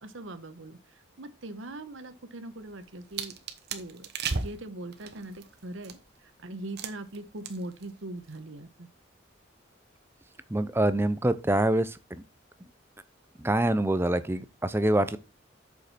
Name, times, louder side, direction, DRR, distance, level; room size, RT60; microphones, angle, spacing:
voice 1, 0.0-0.8 1.2-3.3 3.7-4.1 4.3-8.9, right 2 dB, 75° right, 1.1 m, -41 dB
sound 1, 2.6-6.2 6.8-7.2 7.4-7.9 8.1-8.4, right 5 dB, 55° right, 1.1 m, -35 dB
voice 2, 10.5-12.2 13.4-15.2, right 1 dB, 10° right, 0.6 m, -25 dB
8.2 x 6.4 x 4.3 m
head